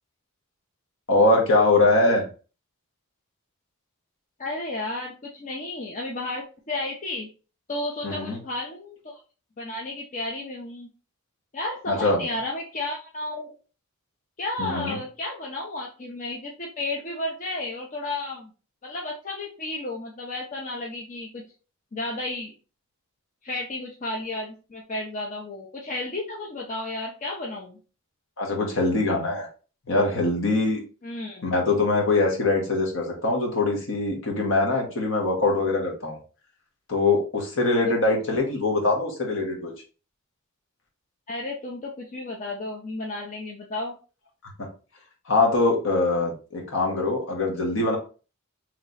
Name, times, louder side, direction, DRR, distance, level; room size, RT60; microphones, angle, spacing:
voice 1, 1.1-2.2 8.0-8.4 11.9-12.2 14.6-15.0 28.4-29.5 29.9-30.8 31.4-36.2 36.9-39.7 45.3-48.0, left 2 dB, 60° left, 1 dB, 1.2 m, -23 dB
voice 2, 4.4-7.3 7.7-9.2 9.6-10.9 11.5-13.5 14.4-18.5 18.8-21.4 21.9-22.5 23.4-27.8 31.0-31.4 37.8-37.9 41.3-43.9, left 2 dB, 35° left, -1 dB, 0.6 m, -33 dB
3.2 x 3.0 x 3.9 m, 0.36 s
head